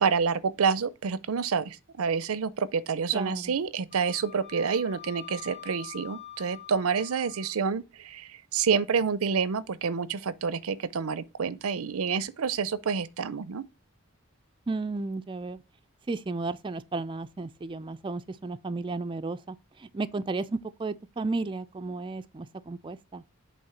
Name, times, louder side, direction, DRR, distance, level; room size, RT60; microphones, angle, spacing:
voice 1, 0.0-13.6, right 6 dB, 85° right, 0.5 m, -28 dB
voice 2, 3.1-3.5 14.7-15.6 16.1-19.6 19.9-23.2, right 3 dB, 25° right, 0.4 m, -33 dB
Wind instrument woodwind instrument, 3.9-7.5, left 11 dB, 30° left, 1.1 m, -46 dB
7.9 x 3.2 x 5.7 m
head